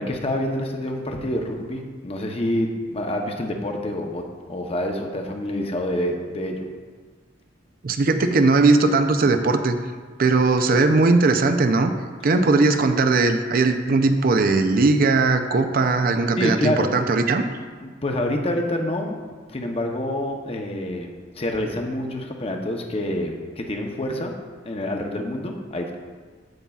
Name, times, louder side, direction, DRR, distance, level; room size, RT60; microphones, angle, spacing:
voice 1, 0.0-6.6 16.4-16.9 17.8-19.2 19.5-21.1 21.4-24.3 24.6-26.0, left 1 dB, 30° left, 3 dB, 0.7 m, -27 dB
voice 2, 7.8-9.8 10.2-11.9 12.2-17.4, right 3 dB, 50° right, 8 dB, 0.5 m, -19 dB
14.5 x 5.4 x 2.4 m, 1.5 s
head